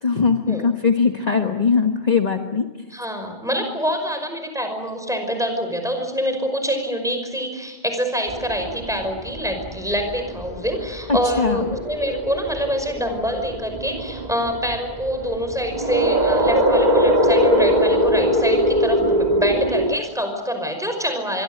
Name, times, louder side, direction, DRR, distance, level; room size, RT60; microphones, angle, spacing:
voice 1, 0.0-2.7 11.1-11.6, left 5 dB, 40° left, 4 dB, 1.4 m, -20 dB
voice 2, 2.9-21.4, equal, 5° right, 5 dB, 5.4 m, -25 dB
sound 1, 8.3-19.9, equal, 40° right, 2.0 m, -22 dB
25.0 x 23.5 x 8.0 m, 1.2 s
omnidirectional pair, 1.1 m